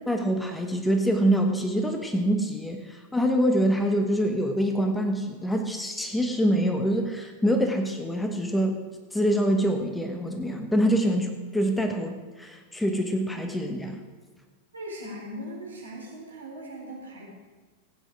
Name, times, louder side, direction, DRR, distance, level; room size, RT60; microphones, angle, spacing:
voice 1, 0.1-8.8 9.1-14.0, equal, 5° left, 4 dB, 1.2 m, -25 dB
voice 2, 14.7-17.2, equal, 75° right, -3 dB, 4.5 m, -39 dB
15.5 x 9.3 x 5.0 m, 1.3 s
figure-of-eight pair, 90°, 0 cm